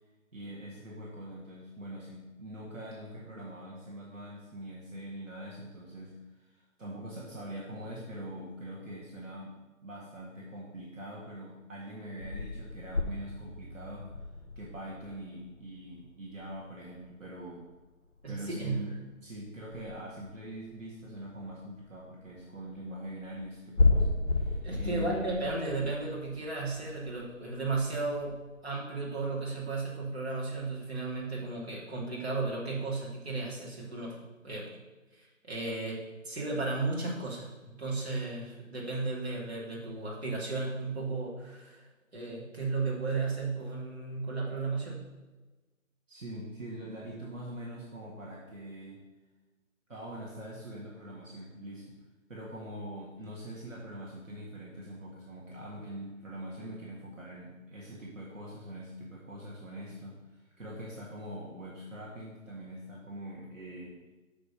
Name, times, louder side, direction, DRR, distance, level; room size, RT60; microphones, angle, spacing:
voice 1, 0.3-14.2 14.6-17.6 18.3-25.3 46.1-49.0 49.9-51.9 52.3-64.0, right 1 dB, 65° right, -4 dB, 1.9 m, -43 dB
sound 1, 12.2-17.9 18.1-28.6, left 3 dB, 50° left, 1.1 m, -33 dB
voice 2, 18.2-18.8 24.6-28.4 28.6-34.2 34.4-34.7 35.5-36.0 36.2-41.8 42.1-45.0, right 3 dB, 50° right, -4 dB, 2.6 m, -34 dB
6.7 x 5.3 x 6.5 m, 1.2 s
figure-of-eight pair, 180°, 41 cm